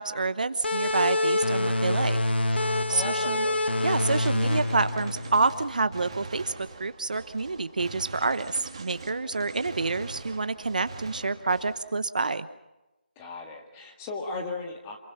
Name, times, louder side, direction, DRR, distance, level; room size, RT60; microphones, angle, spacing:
voice 1, 0.0-2.2 2.5-3.4 3.8-12.5, right 3 dB, 50° right, 12 dB, 1.1 m, -28 dB
sound 1, 0.6-5.9, left 1 dB, 85° left, 1.5 m, -26 dB
voice 2, 2.9-3.7 13.2-15.0, left 3 dB, 10° left, 2 dB, 1.9 m, -36 dB
Gunshot gunfire, 3.9-11.9, right 4 dB, 30° right, 2.5 m, -43 dB
27.0 x 22.5 x 5.8 m, 1.0 s
figure-of-eight pair, 170°, 6 cm